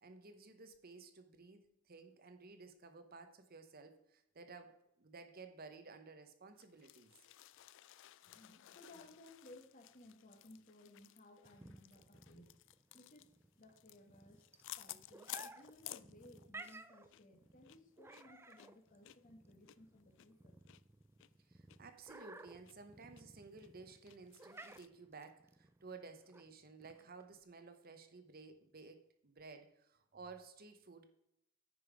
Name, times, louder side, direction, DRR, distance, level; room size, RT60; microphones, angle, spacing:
voice 1, 0.0-7.1 21.5-31.1, right 4 dB, 45° right, 8 dB, 0.9 m, -55 dB
sound 1, 6.6-16.8 17.1-17.2 17.6-20.8 21.2-21.3 21.7-21.8 22.2-22.7 23.2-23.3 23.6-24.9, left 15 dB, 60° left, 0.3 m, -55 dB
voice 2, 8.2-12.6 12.9-13.3 13.6-14.4 14.8-20.6, left 1 dB, 40° left, 5 dB, 1.3 m, -60 dB
sound 2, 11.5-27.4, right 2 dB, 10° right, 0.4 m, -57 dB
9.6 x 5.5 x 5.1 m, 0.79 s
head